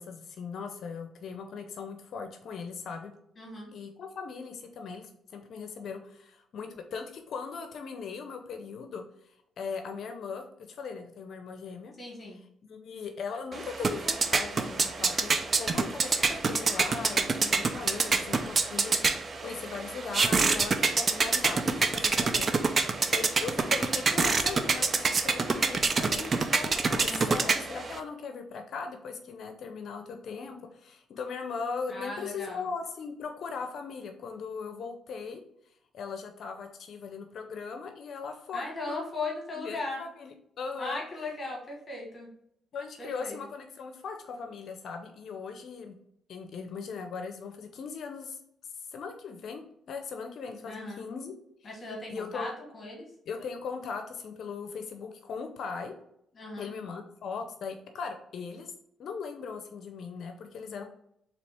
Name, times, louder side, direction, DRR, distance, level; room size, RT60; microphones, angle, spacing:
voice 1, 0.0-3.1 3.7-11.9 12.6-15.3 15.6-35.4 35.9-39.0 39.5-41.0 42.7-46.0 46.3-48.4 48.9-51.4 51.6-51.8 52.1-52.5 53.3-55.9 56.6-58.7 59.0-60.8, left 5 dB, 65° left, 5 dB, 0.6 m, -39 dB
voice 2, 3.4-3.7 12.0-12.4 27.0-27.4 31.9-32.6 38.5-40.0 40.8-42.3 43.0-43.4 50.6-51.0 51.6-53.1 56.4-56.7, left 2 dB, 35° left, -1 dB, 1.3 m, -38 dB
sound 1, 13.5-28.0, right 4 dB, 40° right, 0.5 m, -27 dB
4.1 x 2.9 x 3.4 m, 0.73 s
cardioid pair, 90°, 0 cm